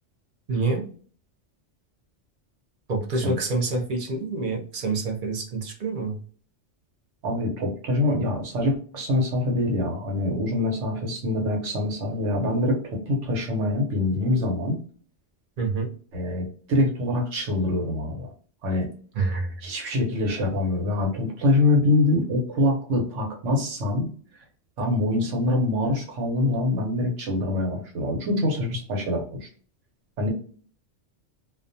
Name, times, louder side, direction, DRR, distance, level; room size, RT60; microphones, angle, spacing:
voice 1, 0.5-0.8 2.9-6.2 15.6-15.9 19.1-19.5, right 3 dB, 50° right, 2 dB, 0.7 m, -27 dB
voice 2, 7.2-14.8 16.1-18.3 18.6-18.9 19.6-24.1 24.8-29.5 30.2-30.3, left 2 dB, 85° right, 1 dB, 1.2 m, -24 dB
2.4 x 2.2 x 2.6 m, 0.43 s
omnidirectional pair, 1.2 m